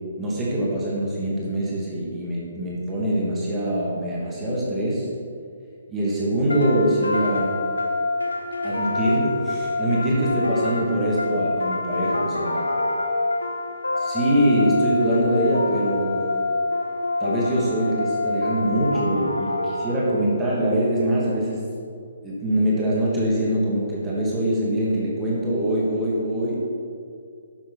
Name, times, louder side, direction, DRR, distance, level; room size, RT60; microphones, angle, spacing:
voice 1, 0.2-5.1 5.9-7.6 8.6-12.6 14.0-16.3 17.2-21.6 22.2-26.7, right 1 dB, 15° right, -6 dB, 2.6 m, -23 dB
sound 1, 6.5-20.4, left 2 dB, 75° left, 1.2 m, -26 dB
12.0 x 9.4 x 4.3 m, 2.3 s
figure-of-eight pair, 130°, 0 cm